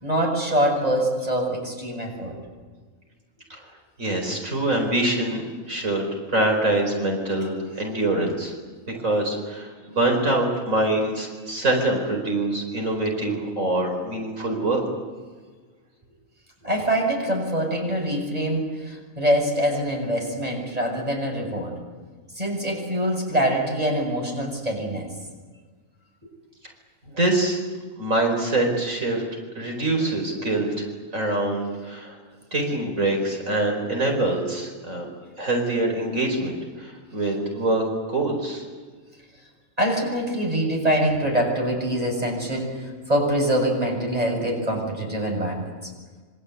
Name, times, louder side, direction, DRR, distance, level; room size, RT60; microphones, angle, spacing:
voice 1, 0.0-2.4 16.6-21.8 22.3-25.1 39.8-45.9, right 1 dB, 30° right, 1 dB, 7.3 m, -24 dB
voice 2, 4.0-5.4 5.7-8.5 9.0-14.8 27.1-27.6 28.0-29.2 29.6-32.2 32.5-35.1 35.4-38.6, right 2 dB, 75° right, 2 dB, 5.2 m, -24 dB
27.5 x 25.5 x 8.4 m, 1.4 s
omnidirectional pair, 1.4 m